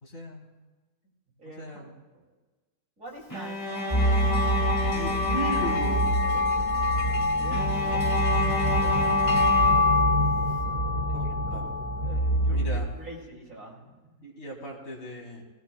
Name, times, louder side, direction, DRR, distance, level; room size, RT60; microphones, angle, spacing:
voice 1, 0.0-0.5 1.6-1.9 4.9-6.1 9.6-10.1 11.1-11.7 12.5-12.9 14.2-15.4, equal, 45° left, -3 dB, 2.6 m, -37 dB
voice 2, 1.4-2.2 3.0-4.3 6.2-6.5 7.4-9.2 11.1-11.6 12.0-14.2, right 1 dB, 55° right, -3 dB, 3.4 m, -46 dB
Bowed string instrument, 3.3-6.5 7.5-10.4, left 1 dB, 20° left, 2.5 m, -32 dB
sound 1, 3.7-12.3, left 3 dB, 80° left, 0.4 m, -27 dB
sound 2, 3.9-12.8, right 1 dB, 15° right, 1.2 m, -28 dB
18.0 x 17.5 x 2.3 m, 1.2 s
omnidirectional pair, 1.6 m